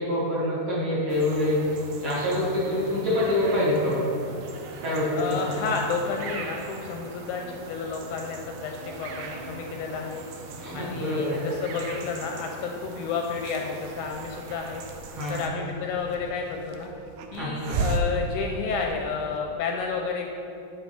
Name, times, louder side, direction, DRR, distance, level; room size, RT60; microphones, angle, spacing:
voice 1, 0.0-1.6 2.0-4.1 4.8-5.5 10.6-11.4 15.1-15.4 17.4-17.8, left 1 dB, 45° right, -8 dB, 2.2 m, -26 dB
sound 1, 1.1-15.5, right 4 dB, 75° right, 1.8 m, -41 dB
voice 2, 5.2-10.2 10.7-14.8 15.3-16.9 17.3-20.3, left 5 dB, 80° left, 2 dB, 1.9 m, -31 dB
Hiss, 13.8-19.3, right 3 dB, 90° right, 2.3 m, -34 dB
9.3 x 5.9 x 4.1 m, 2.8 s
omnidirectional pair, 3.9 m